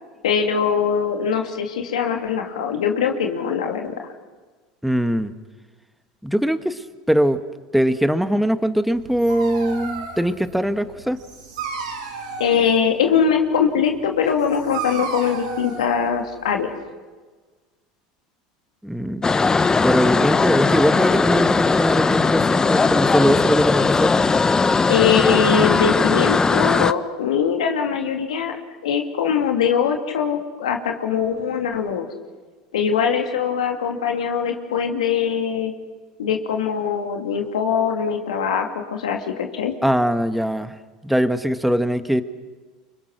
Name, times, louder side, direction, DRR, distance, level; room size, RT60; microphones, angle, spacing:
voice 1, 0.2-3.9 12.4-16.8 24.9-28.6 28.8-32.1 32.7-35.7 36.2-39.7, left 7 dB, 85° left, 3 dB, 2.6 m, -22 dB
voice 2, 4.8-5.3 6.2-7.4 7.7-11.2 18.8-19.3 19.8-24.2 39.8-40.7 41.0-42.2, equal, ahead, 10 dB, 1.6 m, -21 dB
Dog, 8.9-16.7, right 5 dB, 85° right, 6.7 m, -34 dB
sound 1, 19.2-26.9, left 4 dB, 20° left, 0.9 m, -18 dB
28.5 x 25.0 x 6.3 m, 1.4 s
hypercardioid pair, 85°, 3 cm